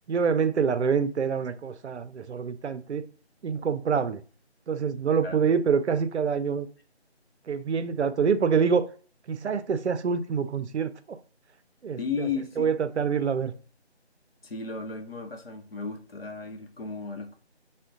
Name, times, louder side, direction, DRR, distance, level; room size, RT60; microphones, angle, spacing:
voice 1, 0.1-3.0 3.4-4.2 4.7-6.7 7.5-8.9 9.3-11.2 11.8-12.3 12.6-13.5, right 6 dB, 80° right, 0.5 m, -26 dB
voice 2, 12.0-12.7 14.4-17.3, left 5 dB, 60° left, 0.7 m, -34 dB
3.6 x 2.2 x 3.7 m
figure-of-eight pair, 180°, 34 cm